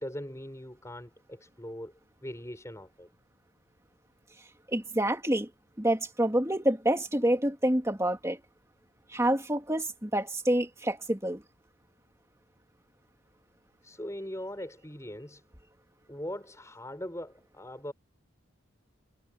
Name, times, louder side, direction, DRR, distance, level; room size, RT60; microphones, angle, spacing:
voice 1, 0.0-1.9 2.2-3.1 13.8-15.4 16.1-17.9, left 1 dB, 15° left, 4.9 m, -40 dB
voice 2, 4.7-5.5 5.8-8.4 9.1-11.4, right 1 dB, 15° right, 2.8 m, -27 dB
head